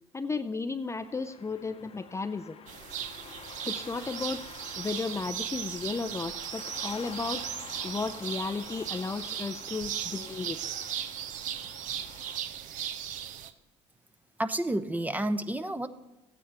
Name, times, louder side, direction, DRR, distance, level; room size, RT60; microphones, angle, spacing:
voice 1, 0.1-2.6 3.6-4.4 4.8-7.4 7.8-10.7, left 4 dB, 20° left, 8 dB, 0.5 m, -34 dB
sound 1, 1.0-12.4, left 7 dB, 45° left, 0.9 m, -48 dB
sound 2, 2.7-13.5, right 10 dB, 60° right, 0.7 m, -37 dB
voice 2, 14.4-15.9, right 1 dB, 10° right, 11 dB, 0.8 m, -30 dB
13.0 x 9.4 x 4.4 m, 1.1 s
hypercardioid pair, 65°, 14 cm